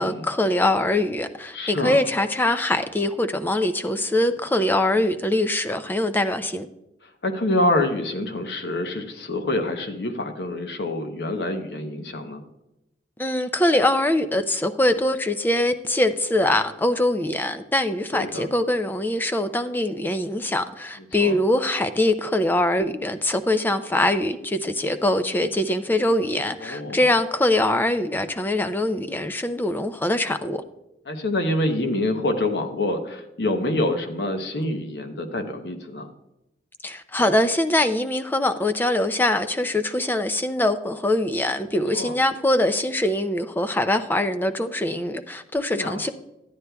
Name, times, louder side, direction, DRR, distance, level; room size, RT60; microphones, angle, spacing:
voice 1, 0.0-6.7 13.2-30.6 36.8-46.1, left 1 dB, 10° left, 0.4 m, -23 dB
voice 2, 1.5-2.0 7.2-12.4 18.1-18.5 21.2-21.4 26.6-27.1 31.1-36.1 41.9-42.2 45.7-46.1, left 1 dB, 70° left, 0.8 m, -26 dB
13.0 x 9.4 x 2.3 m
head